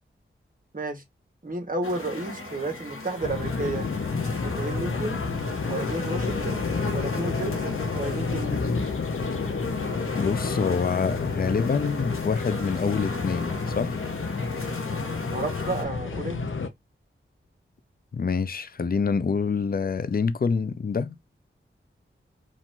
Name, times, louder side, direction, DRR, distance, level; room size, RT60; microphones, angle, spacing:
voice 1, 1.4-3.9 4.4-5.2 5.7-6.6 6.9-8.6 15.3-16.4, right 2 dB, 40° right, 1.7 m, -32 dB
sound 1, 1.8-15.8, left 2 dB, 90° left, 1.7 m, -37 dB
sound 2, 3.2-16.7, left 4 dB, 70° left, 0.9 m, -30 dB
voice 2, 10.1-14.0 18.1-21.2, left 5 dB, 45° left, 0.6 m, -26 dB
4.9 x 2.7 x 3.7 m
cardioid pair, 50°, 21 cm